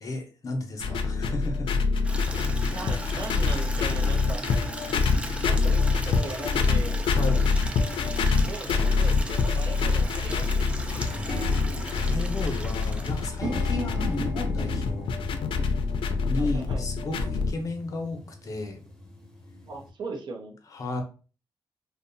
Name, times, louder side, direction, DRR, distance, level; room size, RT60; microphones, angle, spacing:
voice 1, 0.0-1.7 7.1-7.5 11.9-15.1 16.3-18.8 20.7-21.0, left 2 dB, 40° left, 4 dB, 0.6 m, -33 dB
sound 1, 0.8-17.5, left 4 dB, 75° left, 0.4 m, -26 dB
Water tap faucet / Liquid, 2.0-13.6, right 1 dB, 15° right, 0.4 m, -38 dB
voice 2, 2.7-4.4 5.4-7.0 8.3-10.7 16.4-16.8 19.7-20.6, right 3 dB, 60° right, 0 dB, 0.6 m, -39 dB
sound 2, 9.3-9.4 9.8-9.9 10.2-19.9, equal, 5° left, 0.8 m, -38 dB
2.6 x 2.1 x 2.5 m, 0.36 s
cardioid pair, 115°, 9 cm